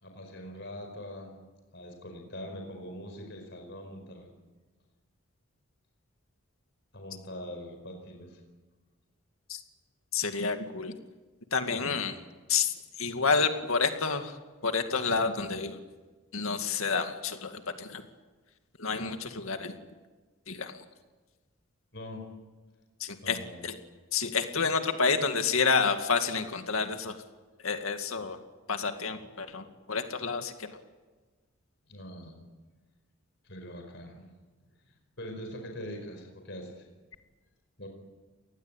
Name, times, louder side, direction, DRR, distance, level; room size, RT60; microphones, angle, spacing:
voice 1, 0.0-1.4 1.7-4.3 6.9-8.4 11.8-12.0 21.9-22.3 23.2-23.7 31.9-32.4 33.4-34.3 35.2-36.9 37.8-37.9, equal, 55° left, 4 dB, 5.0 m, -43 dB
voice 2, 10.1-10.9 11.5-12.1 12.5-14.4 14.6-15.8 16.3-18.0 18.8-19.7 20.5-20.8 23.0-23.4 23.6-23.7 24.1-27.1 27.6-28.4 28.7-30.8, left 5 dB, 80° left, 6 dB, 2.2 m, -29 dB
29.0 x 19.5 x 9.0 m, 1.3 s
head